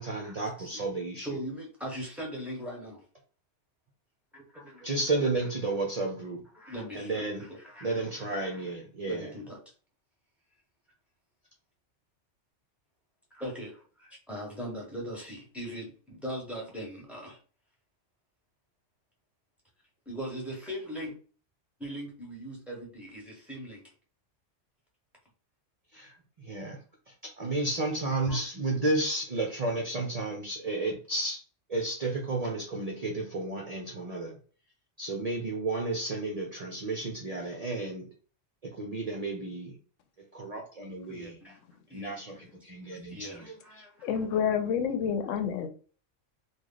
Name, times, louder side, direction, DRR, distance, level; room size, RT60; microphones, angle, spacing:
voice 1, 0.0-1.3 4.8-6.4 6.9-7.5 7.8-9.4 25.9-26.1 26.4-31.4 31.7-34.4 35.0-38.1 38.6-39.8 40.2-41.4 41.9-43.8, right 2 dB, 45° right, 0 dB, 0.5 m, -32 dB
voice 2, 1.2-3.0 4.3-4.9 6.6-7.9 9.0-9.6 13.3-17.4 20.1-21.1 21.8-23.8 25.9-26.2 28.3-28.4 41.1-41.6 41.9-42.2 42.7-44.3, equal, ahead, -3 dB, 1.1 m, -40 dB
voice 3, 44.0-45.7, left 7 dB, 85° left, 7 dB, 0.9 m, -28 dB
3.1 x 2.3 x 3.8 m, 0.39 s
omnidirectional pair, 1.3 m